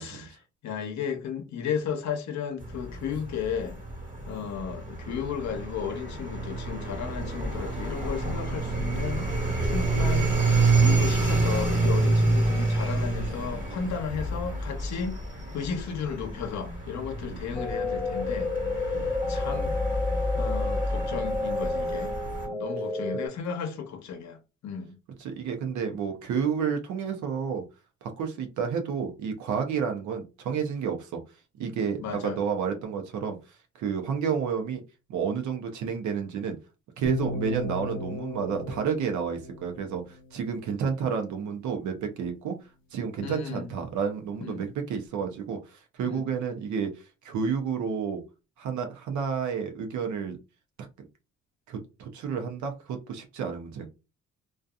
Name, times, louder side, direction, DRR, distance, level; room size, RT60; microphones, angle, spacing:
voice 1, 0.0-3.8 4.3-9.3 9.6-10.4 10.8-15.2 15.5-19.7 20.4-22.1 22.5-24.4 24.6-25.0 32.0-32.4 43.2-43.7 44.4-44.6 46.1-46.3, left 7 dB, 65° left, 0.8 m, -34 dB
sound 1, 2.6-22.5, right 2 dB, 25° right, 1.3 m, -28 dB
sound 2, 17.6-23.3, left 2 dB, 5° left, 0.6 m, -30 dB
voice 2, 25.2-27.6 28.0-31.2 31.6-34.8 35.1-36.6 37.0-42.6 42.9-48.2 48.6-50.4 51.7-53.9, right 6 dB, 70° right, 0.6 m, -30 dB
sound 3, 37.1-41.1, left 3 dB, 40° left, 1.0 m, -37 dB
2.6 x 2.3 x 2.3 m
cardioid pair, 90°, 30 cm